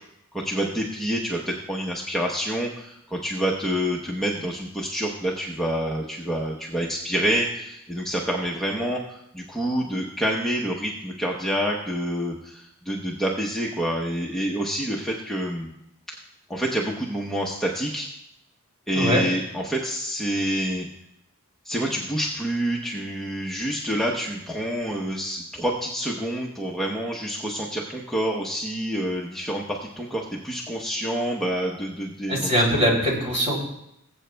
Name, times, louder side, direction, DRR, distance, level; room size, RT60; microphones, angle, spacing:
voice 1, 0.3-1.4 1.7-15.7 16.5-18.1 18.9-20.9 21.6-32.6, equal, ahead, -3 dB, 0.8 m, -27 dB
voice 2, 32.3-33.5, equal, 30° right, -2 dB, 3.0 m, -21 dB
21.0 x 7.9 x 2.2 m, 0.80 s
head